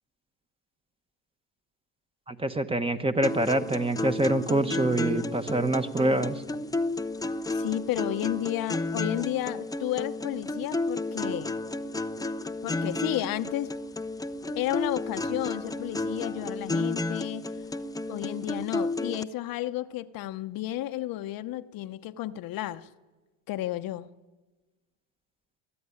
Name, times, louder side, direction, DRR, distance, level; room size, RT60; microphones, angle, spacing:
voice 1, 2.3-6.4, right 2 dB, 15° right, 1.3 m, -26 dB
sound 1, 3.2-19.2, left 2 dB, 10° left, 0.6 m, -32 dB
voice 2, 7.5-11.6 12.6-13.7 14.5-17.5 18.1-22.9 23.5-24.1, left 14 dB, 60° left, 1.0 m, -32 dB
23.0 x 14.0 x 9.9 m
supercardioid pair, 110°, 40 cm